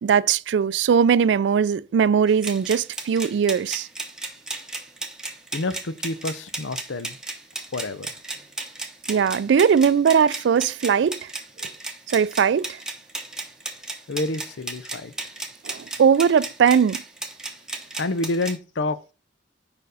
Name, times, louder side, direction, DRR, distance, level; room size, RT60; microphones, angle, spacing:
voice 1, 0.0-3.9 9.1-11.3 12.1-12.8 15.6-17.0, right 7 dB, 70° right, 0.3 m, -20 dB
sound 1, 2.3-18.6, right 2 dB, 5° right, 0.8 m, -35 dB
voice 2, 5.5-7.2 7.7-8.1 14.1-15.1 18.0-19.0, left 2 dB, 90° left, 0.6 m, -28 dB
5.2 x 4.6 x 4.8 m
head